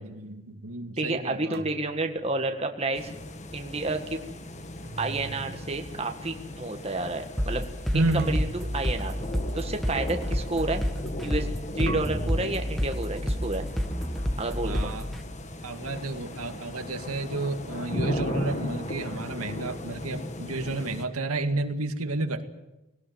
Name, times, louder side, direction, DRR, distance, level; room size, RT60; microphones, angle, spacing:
voice 1, 0.0-1.6 7.9-8.4 14.6-15.1 15.6-22.5, right 2 dB, 90° right, 6 dB, 2.1 m, -31 dB
voice 2, 1.0-3.1 3.5-4.2 5.0-7.6 7.9-9.1 9.5-10.8 11.2-11.5 11.7-13.7 14.4-14.9, right 2 dB, 30° right, 5 dB, 1.7 m, -30 dB
sound 1, 1.5-2.9 4.8-5.9 8.2-9.2 11.9-12.9, right 3 dB, 45° right, 1.2 m, -42 dB
sound 2, 2.9-21.0, left 1 dB, 30° left, 1.5 m, -37 dB
sound 3, 7.4-15.2, equal, ahead, 1.3 m, -29 dB
19.5 x 18.5 x 9.4 m, 0.96 s
head